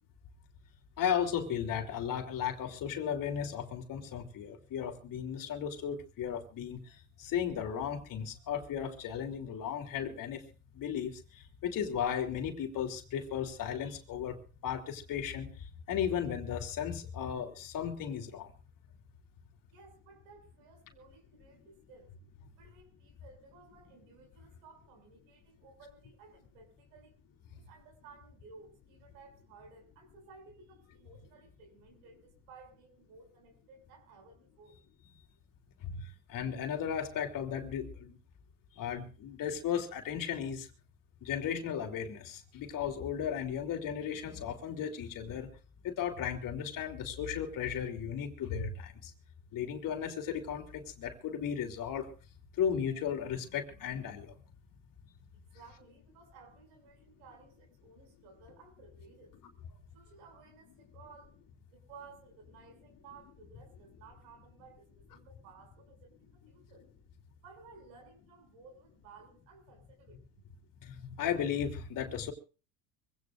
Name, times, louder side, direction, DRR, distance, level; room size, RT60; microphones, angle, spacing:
voice 1, 1.0-6.8 7.2-10.4 10.8-11.2 11.6-14.4 14.6-15.5 15.9-18.5 35.8-36.0 36.3-38.2 38.8-40.7 41.2-45.5 45.8-48.9 49.5-52.1 52.6-54.3 70.8-72.3, left 8 dB, 50° left, 4 dB, 3.3 m, -35 dB
voice 2, 19.7-22.1 22.6-27.2 27.5-34.8 55.5-59.3 59.9-61.4 61.7-66.9 67.4-70.2, right 4 dB, 75° right, 3 dB, 7.0 m, -57 dB
25.0 x 17.0 x 2.6 m, 0.35 s
supercardioid pair, 95°, 42 cm